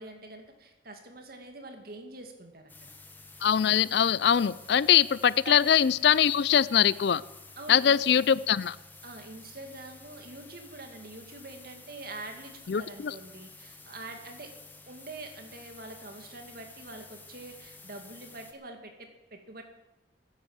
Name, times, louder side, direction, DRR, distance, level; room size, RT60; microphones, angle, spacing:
voice 1, 0.0-2.9 5.4-5.6 7.6-8.0 9.0-14.5 14.9-19.6, right 2 dB, 50° right, 4 dB, 2.2 m, -45 dB
sound 1, 2.7-18.5, left 3 dB, 10° left, 1.2 m, -51 dB
voice 2, 3.4-7.2 7.7-8.8 12.7-13.1, left 8 dB, 60° left, 19 dB, 0.4 m, -23 dB
15.5 x 9.7 x 7.5 m, 1.0 s
head